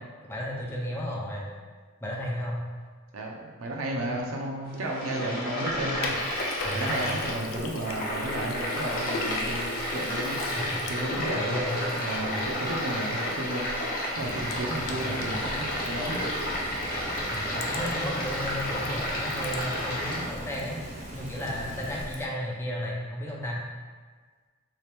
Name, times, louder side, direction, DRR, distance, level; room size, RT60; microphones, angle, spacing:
voice 1, 0.3-1.5 2.0-2.7 6.6-7.2 10.6-10.8 11.1-11.8 12.1-12.5 14.8-15.2 17.3-20.8 21.1-23.6, equal, 10° left, -3 dB, 0.5 m, -34 dB
voice 2, 3.1-6.2 6.7-10.4 10.9-11.6 11.9-16.2, right 1 dB, 80° right, -1 dB, 0.6 m, -33 dB
sound 1, 4.7-20.3, equal, 45° left, 0.8 m, -31 dB
Sink (filling or washing), 5.6-22.3, left 3 dB, 70° left, 0.4 m, -41 dB
sound 2, 14.2-22.1, right 1 dB, 35° right, 0.6 m, -41 dB
3.4 x 2.8 x 3.4 m, 1.5 s
head